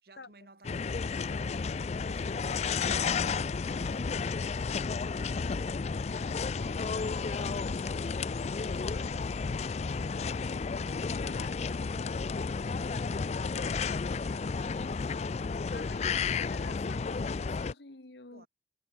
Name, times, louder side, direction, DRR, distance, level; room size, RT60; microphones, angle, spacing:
voice 1, 0.0-3.2 3.7-4.5 5.2-6.3 6.7-10.2 11.3-13.3 13.6-15.3 18.3-18.5, right 2 dB, 60° right, 2.6 m, -59 dB
sound 1, 0.6-17.7, left 5 dB, 40° left, 0.4 m, -32 dB
voice 2, 6.6-7.0 11.2-11.5 13.5-14.0 15.7-18.5, left 3 dB, 70° left, 1.7 m, -48 dB
head